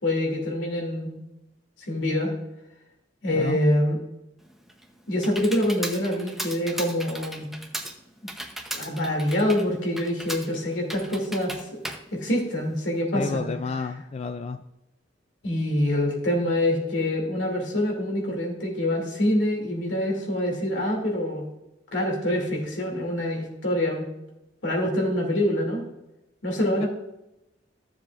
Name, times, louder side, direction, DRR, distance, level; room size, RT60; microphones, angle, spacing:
voice 1, 0.0-1.2 1.9-2.3 3.2-4.0 5.1-7.5 8.7-11.6 12.1-13.5 15.4-21.4 21.9-24.1 24.6-25.8 26.4-26.9, left 1 dB, 85° left, 0 dB, 2.7 m, -25 dB
Computer keyboard, 4.4-13.0, right 1 dB, ahead, 0.7 m, -37 dB
voice 2, 13.1-14.6 26.8-26.9, left 4 dB, 35° left, 9 dB, 0.3 m, -30 dB
14.0 x 7.3 x 2.5 m, 0.91 s
head